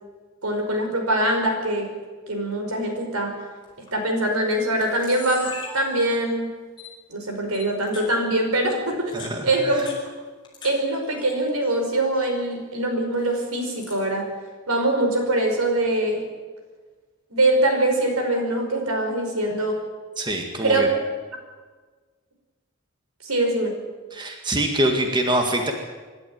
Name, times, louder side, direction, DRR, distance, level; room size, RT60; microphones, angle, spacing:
voice 1, 0.4-1.9 2.3-3.3 3.9-5.5 5.7-6.5 7.1-9.1 9.4-9.9 10.6-14.3 14.7-16.2 17.3-19.8 20.6-20.9 23.2-23.8, right 1 dB, 90° right, 4 dB, 5.4 m, -23 dB
Camera, 3.6-3.9 4.5-4.6 4.8-6.4 6.8-6.9 7.5-8.1 8.9-10.7 11.0-11.7 12.0-12.4 13.2-14.0, left 4 dB, 20° left, 5.8 m, -40 dB
voice 2, 9.1-9.8 20.2-20.9 24.1-25.7, right 1 dB, 20° right, 3 dB, 1.9 m, -24 dB
25.0 x 12.5 x 9.4 m, 1.4 s
head